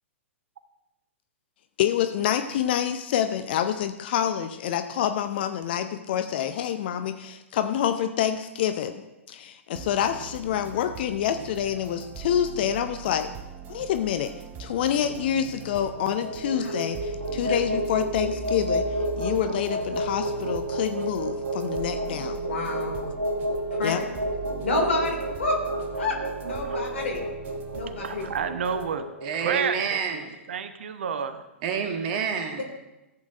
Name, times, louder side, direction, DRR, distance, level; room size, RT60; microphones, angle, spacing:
voice 1, 1.8-8.9 9.3-13.3 13.7-14.3 14.6-18.8 19.2-22.4 23.8-24.0, left 9 dB, 50° left, 9 dB, 0.5 m, -27 dB
sound 1, 9.7-29.0, right 7 dB, 25° right, 0.9 m, -41 dB
sound 2, 15.9-30.1, right 1 dB, 85° right, 1.4 m, -31 dB
voice 2, 22.4-23.1 23.8-23.9 24.6-25.6 25.9-27.2 27.7-28.2 31.7-31.8 32.6-32.7, left 2 dB, 65° left, 2 dB, 2.3 m, -29 dB
voice 3, 28.0-29.0 29.4-29.8 30.1-31.4, right 7 dB, 60° right, 11 dB, 0.8 m, -30 dB
voice 4, 29.2-30.3 31.6-32.6, right 6 dB, 45° right, 5 dB, 1.4 m, -28 dB
14.5 x 8.3 x 2.5 m, 0.98 s
figure-of-eight pair, 105°, 7 cm